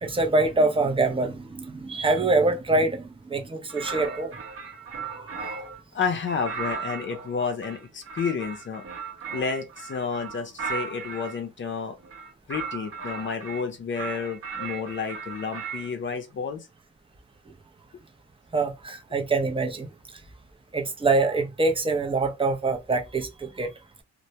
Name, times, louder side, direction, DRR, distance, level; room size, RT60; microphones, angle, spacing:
voice 1, 0.0-4.4 5.5-5.6 18.5-19.9 20.7-23.7, right 3 dB, 20° right, 0.6 m, -25 dB
sound 1, 3.7-5.8 6.3-11.4 12.0-13.6 14.0-15.9, right 5 dB, 45° right, 0.8 m, -36 dB
voice 2, 5.9-8.8 9.3-12.0 12.5-16.7, left 5 dB, 40° left, 0.6 m, -30 dB
2.1 x 2.1 x 2.7 m
cardioid pair, 90°, 30 cm